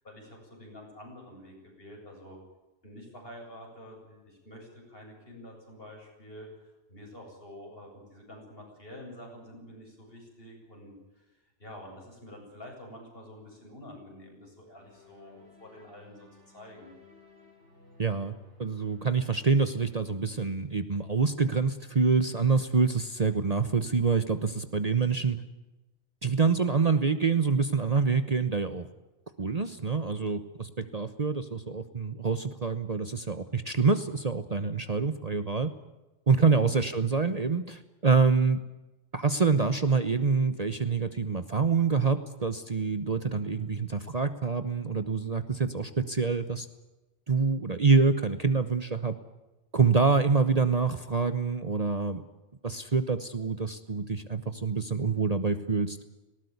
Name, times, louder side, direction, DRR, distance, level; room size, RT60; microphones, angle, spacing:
voice 1, 0.0-2.4 2.8-16.3 16.5-17.0 36.4-36.7, left 1 dB, 55° left, 0 dB, 8.3 m, -48 dB
sound 1, 14.7-20.1, left 4 dB, 75° right, 8.2 m, -57 dB
voice 2, 18.0-18.3 18.6-25.4 26.2-28.9 29.4-35.7 36.3-38.6 39.1-46.7 47.3-49.2 49.7-52.2 52.6-56.0, right 4 dB, 35° right, 11 dB, 1.1 m, -26 dB
19.5 x 18.5 x 9.6 m, 1.0 s
omnidirectional pair, 1.2 m